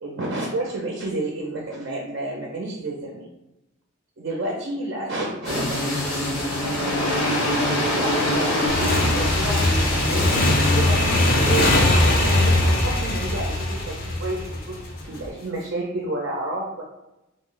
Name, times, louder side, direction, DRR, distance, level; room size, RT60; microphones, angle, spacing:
voice 1, 0.0-3.3 4.2-5.9 6.3-7.5 7.9-14.8 15.1-16.8, right 2 dB, 60° right, -2 dB, 0.5 m, -30 dB
sound 1, 5.4-15.3, left 1 dB, 85° left, 1.0 m, -26 dB
Motorcycle / Engine, 8.7-15.0, left 1 dB, 45° left, 0.5 m, -21 dB
3.2 x 2.0 x 3.8 m, 0.91 s
head